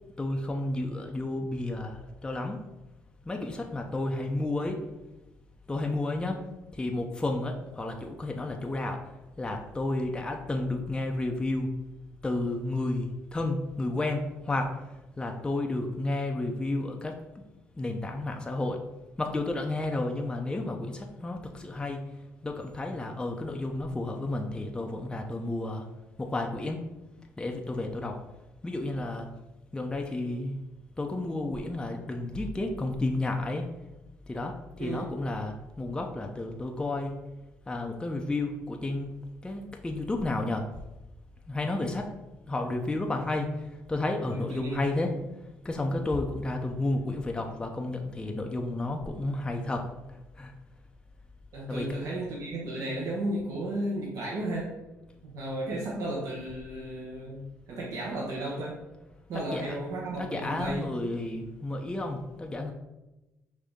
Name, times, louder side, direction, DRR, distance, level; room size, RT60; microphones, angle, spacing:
voice 1, 0.2-2.6 3.3-4.8 5.7-6.4 6.7-9.0 9.4-11.7 12.2-14.8 15.2-17.2 17.8-18.8 19.2-22.1 22.4-25.9 26.2-26.8 27.4-28.2 28.6-29.3 29.7-30.6 31.0-33.7 34.3-37.2 37.7-39.2 39.4-40.6 41.5-42.1 42.5-45.1 45.6-49.8 50.4-50.5 51.7-51.9 59.3-59.8 60.2-62.7, left 2 dB, 15° left, 2 dB, 0.5 m, -31 dB
voice 2, 34.8-35.1 44.3-44.8 51.5-54.7 55.2-58.8 59.3-60.9, right 1 dB, 70° right, -4 dB, 1.1 m, -34 dB
5.2 x 2.7 x 3.5 m, 1.0 s
cardioid pair, 85°, 6 cm